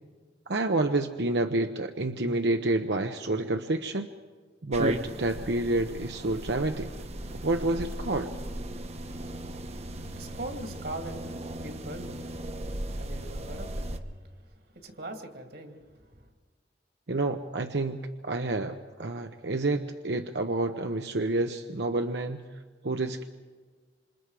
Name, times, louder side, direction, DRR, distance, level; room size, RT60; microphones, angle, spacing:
voice 1, 0.5-4.1 4.6-6.9 7.4-8.3 17.1-18.0 18.2-22.4 22.8-23.2, right 2 dB, 80° right, 6 dB, 0.9 m, -28 dB
sound 1, 4.7-14.0, right 1 dB, 35° right, 1.1 m, -37 dB
voice 2, 9.1-11.2 11.5-12.4 12.7-16.3, right 1 dB, 65° right, 4 dB, 2.5 m, -42 dB
27.5 x 27.0 x 4.9 m, 1.5 s
head